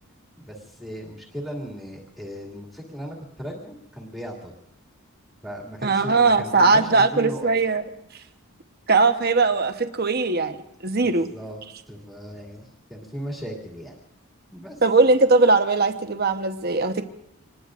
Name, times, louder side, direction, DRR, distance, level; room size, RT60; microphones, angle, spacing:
voice 1, 0.4-4.5 5.4-7.5 11.0-11.6 11.9-14.0 14.5-14.8, equal, ahead, -2 dB, 2.5 m, -37 dB
voice 2, 5.8-7.8 8.9-11.3 14.8-17.0, right 3 dB, 45° right, 7 dB, 1.1 m, -20 dB
26.0 x 20.5 x 2.6 m, 0.79 s
head